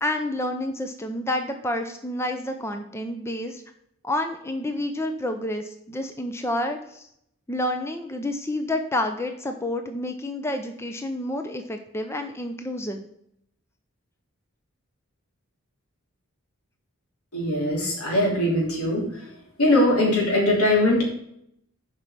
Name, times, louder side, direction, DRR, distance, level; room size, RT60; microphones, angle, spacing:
voice 1, 0.0-3.6 4.0-7.1 7.5-13.0, left 1 dB, 10° left, 5 dB, 0.6 m, -29 dB
voice 2, 17.3-19.3 19.6-21.1, left 1 dB, 90° left, -2 dB, 3.3 m, -21 dB
7.7 x 5.4 x 5.7 m, 0.73 s
head